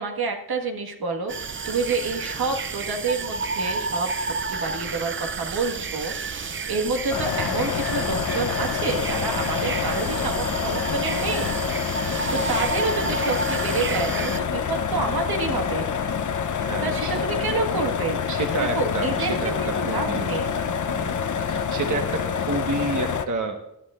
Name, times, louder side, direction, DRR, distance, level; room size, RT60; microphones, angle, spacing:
voice 1, 0.0-6.1 6.5-11.6 12.3-15.9 16.8-18.2 18.7-20.6, right 4 dB, 75° right, 3 dB, 1.7 m, -28 dB
sound 1, 1.3-14.4, right 4 dB, 35° right, 0.6 m, -31 dB
sound 2, 7.1-23.3, left 6 dB, 50° left, 0.8 m, -27 dB
voice 2, 16.6-17.1 18.3-20.3 20.9-23.6, right 3 dB, 55° right, 3 dB, 1.4 m, -30 dB
21.0 x 11.0 x 2.5 m, 0.81 s
wide cardioid pair, 105°, 37 cm